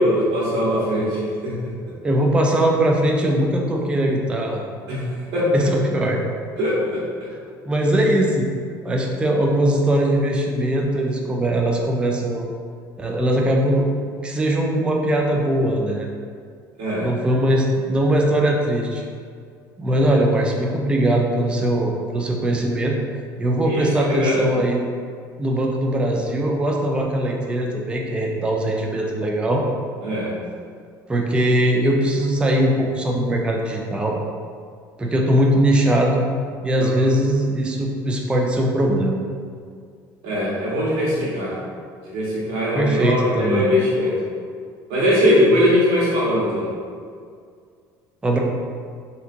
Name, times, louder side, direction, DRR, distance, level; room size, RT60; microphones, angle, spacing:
voice 1, 0.0-1.7 4.9-5.0 5.3-5.5 6.6-7.0 16.8-17.1 19.9-20.0 23.6-24.5 30.0-30.4 36.8-36.9 40.2-41.6 42.0-44.1 44.9-46.7, left 1 dB, 75° right, -8 dB, 1.3 m, -21 dB
voice 2, 2.0-4.6 5.5-6.2 7.7-8.5 8.8-12.5 13.0-13.9 14.2-16.1 17.0-19.0 19.8-22.9 23.4-24.9 25.4-29.6 31.1-34.2 35.0-36.2 36.6-39.2 42.7-43.8 48.2-48.4, right 1 dB, 10° right, 0 dB, 0.4 m, -20 dB
3.4 x 2.8 x 2.5 m, 2.1 s
cardioid pair, 130°, 8 cm